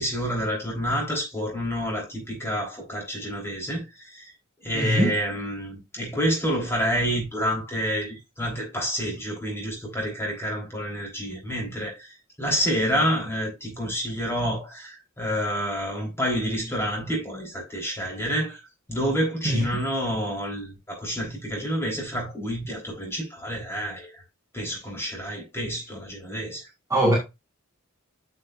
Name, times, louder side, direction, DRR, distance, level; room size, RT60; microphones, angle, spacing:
voice 1, 0.0-4.3 4.6-12.1 12.4-24.2 24.5-26.7, equal, 10° left, 3.7 m, -28 dB
voice 2, 4.7-5.1 19.5-19.6 26.9-27.2, equal, 15° right, 1.7 m, -21 dB
9.3 x 6.6 x 2.5 m
head